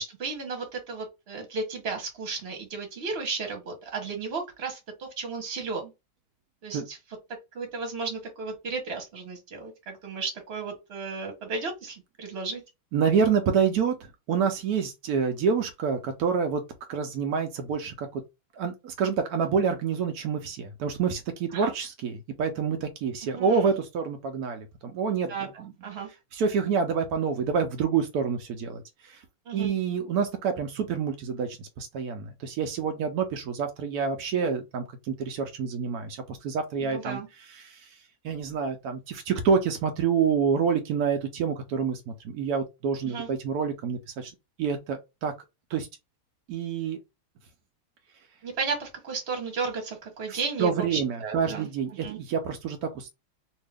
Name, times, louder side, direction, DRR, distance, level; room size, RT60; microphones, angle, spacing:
voice 1, 0.0-5.9 6.6-7.0 7.5-12.6 21.5-21.7 23.3-23.7 25.3-26.1 29.5-29.7 36.8-37.3 43.0-43.3 48.4-51.7 52.0-52.2, right 4 dB, 40° right, 1.1 m, -34 dB
voice 2, 12.9-16.6 16.9-18.2 18.6-25.7 26.3-29.2 29.5-37.9 38.2-44.3 44.6-45.3 45.7-45.9 46.5-47.0 50.3-53.1, right 6 dB, 90° right, 0.8 m, -27 dB
2.9 x 2.7 x 3.3 m
omnidirectional pair, 2.3 m